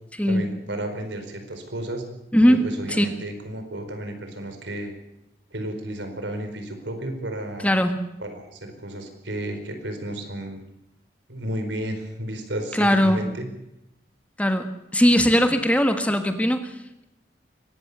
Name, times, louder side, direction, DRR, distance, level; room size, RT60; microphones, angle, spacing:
voice 1, 0.3-2.0 2.5-4.9 5.5-7.7 8.2-10.6 11.3-13.5, right 1 dB, 85° right, 6 dB, 4.6 m, -32 dB
voice 2, 2.3-2.6 2.9-3.2 7.6-8.0 12.7-13.2 14.4-17.0, equal, 10° left, 7 dB, 1.5 m, -20 dB
23.0 x 18.5 x 6.8 m, 0.88 s
head